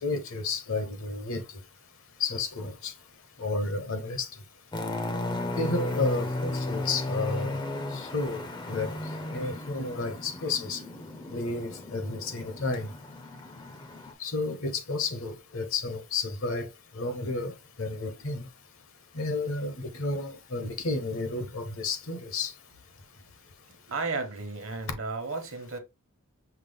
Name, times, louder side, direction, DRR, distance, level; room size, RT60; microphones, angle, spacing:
voice 1, 0.0-1.4 2.2-2.9 3.4-4.3 5.6-7.5 7.9-8.4 8.7-8.9 9.3-10.8 11.3-12.9 14.2-16.7 16.9-17.5 17.8-18.4 19.1-22.5, left 3 dB, 65° left, 0.9 m, -31 dB
sound 1, 4.7-14.1, left 2 dB, 20° left, 0.4 m, -35 dB
voice 2, 23.9-25.8, right 3 dB, 65° right, 1.0 m, -33 dB
5.8 x 2.0 x 3.4 m
head